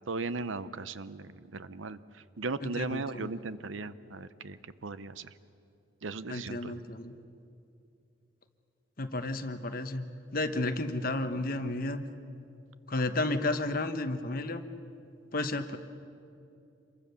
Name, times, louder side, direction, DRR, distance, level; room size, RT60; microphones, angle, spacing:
voice 1, 0.1-5.3 6.0-6.8, right 3 dB, 85° right, 14 dB, 0.8 m, -37 dB
voice 2, 2.6-3.3 6.3-7.1 9.0-10.1 10.3-12.0 12.9-14.6 15.3-15.8, left 2 dB, 50° left, 8 dB, 1.2 m, -32 dB
27.5 x 23.0 x 7.0 m, 2.7 s
head